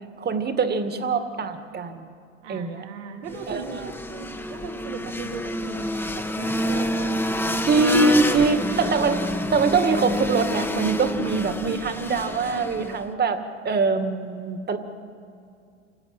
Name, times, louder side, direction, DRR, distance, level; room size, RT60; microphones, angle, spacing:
voice 1, 0.2-2.1 2.5-2.8 3.5-3.6 7.7-14.8, right 4 dB, 25° right, 8 dB, 2.2 m, -23 dB
voice 2, 2.4-3.8 4.1-9.3 11.1-11.8, right 8 dB, 70° right, 2 dB, 3.0 m, -39 dB
sound 1, 3.3-13.1, left 1 dB, 5° left, 1.5 m, -28 dB
27.5 x 17.5 x 9.1 m, 2.4 s
hypercardioid pair, 90°, 37 cm